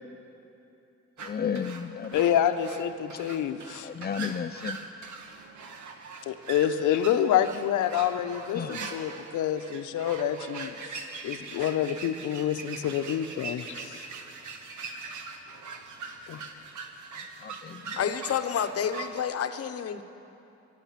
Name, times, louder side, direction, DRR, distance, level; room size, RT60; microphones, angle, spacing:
voice 1, 1.2-2.2 3.8-4.8 8.5-8.9 17.4-18.0, left 7 dB, 30° left, 13 dB, 0.6 m, -33 dB
sound 1, 1.2-19.2, right 4 dB, 75° right, 1.4 m, -42 dB
voice 2, 2.1-3.9 6.3-14.1 16.3-16.4, left 10 dB, 80° left, 9 dB, 0.9 m, -27 dB
voice 3, 18.0-20.0, left 8 dB, 50° left, 9 dB, 0.9 m, -29 dB
22.5 x 11.0 x 5.9 m, 2.9 s
cardioid pair, 90°, 30 cm